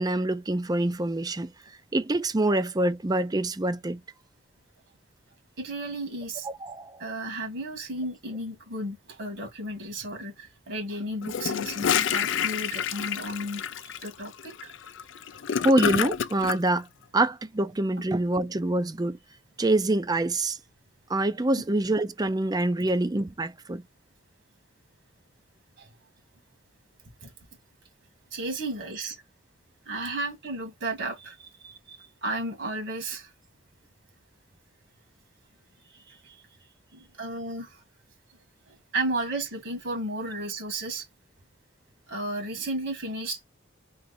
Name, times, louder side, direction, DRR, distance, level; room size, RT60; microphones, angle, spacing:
voice 1, 0.0-1.5 1.9-4.0 6.4-7.0 15.6-16.9 17.1-19.2 19.6-20.6 21.1-23.8, right 2 dB, 20° right, 0.5 m, -25 dB
voice 2, 5.6-6.5 7.0-14.7 25.8-25.9 27.2-27.3 28.3-29.2 29.9-33.3 35.9-36.4 36.9-37.8 38.7-41.0 42.1-43.4, right 1 dB, 65° right, 2.1 m, -34 dB
Gurgling / Toilet flush, 11.2-16.6, left 8 dB, 65° left, 0.5 m, -28 dB
3.9 x 3.1 x 4.2 m
head